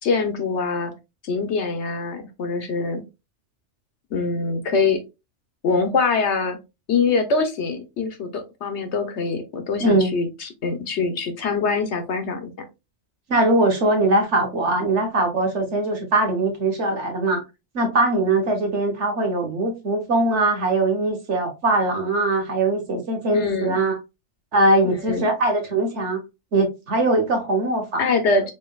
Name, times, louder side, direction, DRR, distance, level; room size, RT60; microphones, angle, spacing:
voice 1, 0.0-0.9 1.2-3.0 4.1-5.0 5.6-6.6 6.9-12.5 23.3-23.8 24.8-25.3 28.0-28.5, left 4 dB, 70° left, 1.2 m, -24 dB
voice 2, 9.8-10.1 13.3-17.4 17.7-24.0 24.5-26.2 26.5-28.0, right 2 dB, 75° right, 1.6 m, -21 dB
4.5 x 3.9 x 2.3 m
omnidirectional pair, 1.2 m